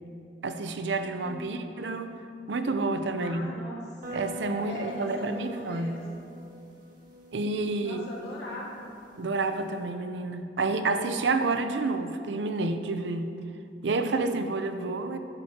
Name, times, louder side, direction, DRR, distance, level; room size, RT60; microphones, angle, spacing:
voice 1, 0.4-2.2 2.5-3.5 4.1-6.0 7.3-8.0 9.2-13.4 13.8-15.2, right 3 dB, 80° right, 8 dB, 0.6 m, -29 dB
voice 2, 3.1-4.0 4.6-6.1 7.8-9.0, left 1 dB, 70° left, -6 dB, 2.5 m, -40 dB
sound 1, 4.0-9.8, equal, 50° right, 2.1 m, -45 dB
11.0 x 9.6 x 2.9 m, 2.5 s
head